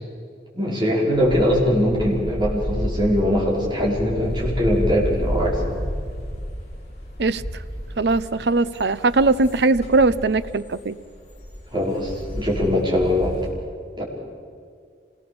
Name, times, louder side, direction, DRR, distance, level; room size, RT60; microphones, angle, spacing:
voice 1, 0.5-5.6 11.7-13.3 14.0-14.1, equal, 25° right, -4 dB, 5.3 m, -21 dB
sound 1, 1.1-13.5, equal, 40° left, 5.9 m, -31 dB
voice 2, 8.0-11.0, right 3 dB, 70° right, 14 dB, 0.7 m, -20 dB
26.5 x 19.5 x 7.0 m, 2.3 s
head